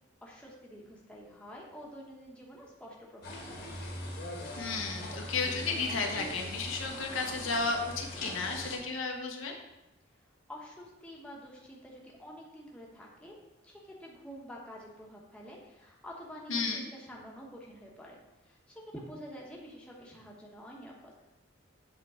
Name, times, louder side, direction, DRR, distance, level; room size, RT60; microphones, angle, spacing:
voice 1, 0.2-3.6 10.5-13.3 13.6-18.2 18.4-21.1, equal, 5° left, -3 dB, 1.0 m, -48 dB
sound 1, 3.2-8.8, left 1 dB, 50° left, 1.3 m, -41 dB
voice 2, 4.6-9.5 16.5-16.8, left 4 dB, 70° left, 1 dB, 1.0 m, -33 dB
8.0 x 3.7 x 4.9 m, 0.95 s
head